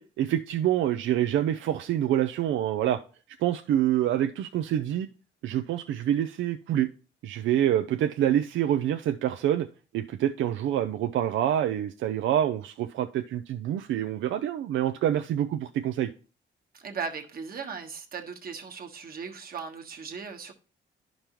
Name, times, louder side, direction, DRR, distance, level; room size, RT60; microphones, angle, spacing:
voice 1, 0.0-3.0 3.4-5.1 5.4-6.9 7.2-9.7 9.9-16.1, right 11 dB, 75° right, 0.5 m, -26 dB
voice 2, 16.7-20.5, right 5 dB, 50° right, 1.4 m, -37 dB
11.5 x 5.2 x 3.0 m
cardioid pair, 90°, 20 cm